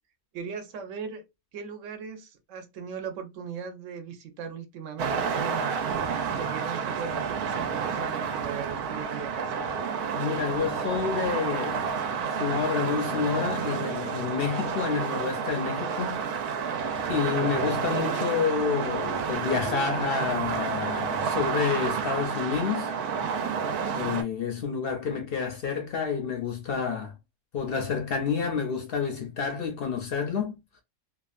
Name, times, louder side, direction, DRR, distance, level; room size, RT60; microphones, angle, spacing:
voice 1, 0.3-1.2 1.5-10.3, right 6 dB, 65° right, 1.0 m, -39 dB
sound 1, 5.0-24.2, right 6 dB, 90° right, 1.1 m, -30 dB
voice 2, 10.1-12.0 12.3-16.2 17.1-22.9 23.9-27.1 27.5-30.6, left 6 dB, 60° left, 0.6 m, -29 dB
2.7 x 2.3 x 2.3 m
omnidirectional pair, 1.6 m